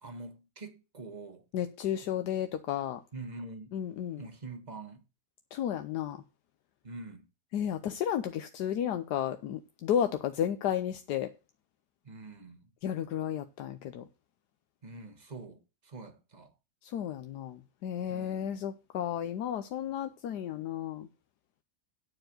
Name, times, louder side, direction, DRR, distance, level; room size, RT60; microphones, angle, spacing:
voice 1, 0.0-1.4 2.0-2.1 3.1-3.7 4.2-5.0 6.8-7.3 12.0-12.7 14.8-16.5 18.1-18.5, right 3 dB, 25° right, 1.5 m, -45 dB
voice 2, 1.5-3.0 3.7-4.2 5.5-6.2 7.5-11.3 12.8-14.0 16.8-21.1, left 9 dB, 85° left, 1.3 m, -33 dB
9.7 x 4.6 x 7.6 m
omnidirectional pair, 1.7 m